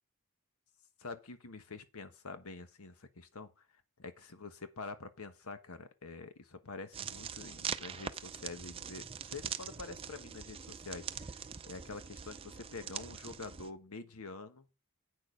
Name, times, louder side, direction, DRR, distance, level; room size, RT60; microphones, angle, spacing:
voice 1, 1.0-3.6 4.0-14.7, left 3 dB, 80° left, 1.2 m, -47 dB
sound 1, 6.9-13.7, right 7 dB, 25° right, 0.5 m, -43 dB
8.8 x 6.5 x 4.9 m
head